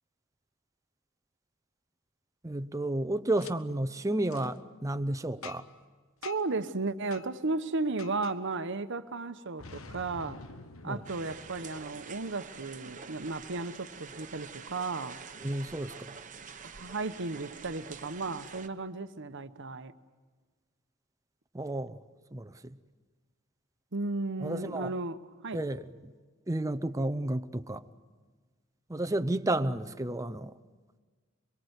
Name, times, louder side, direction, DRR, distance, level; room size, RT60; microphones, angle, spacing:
voice 1, 2.4-5.7 10.8-11.0 15.4-16.1 21.5-22.0 22.3-22.8 24.4-25.0 25.5-26.1 26.5-27.9 28.9-30.6, right 1 dB, 15° right, 0.7 m, -32 dB
Boom, 3.4-3.5 4.3-4.5 5.4-5.8 6.2-6.6 7.1-7.3 8.0-8.4 9.6-12.3, left 4 dB, 75° left, 1.1 m, -47 dB
voice 2, 6.2-10.4 10.8-15.2 16.6-19.9 23.9-25.2 25.4-25.6, right 3 dB, 60° right, 1.0 m, -34 dB
sound 1, 11.0-18.7, right 6 dB, 40° right, 1.0 m, -47 dB
24.0 x 23.0 x 8.1 m
head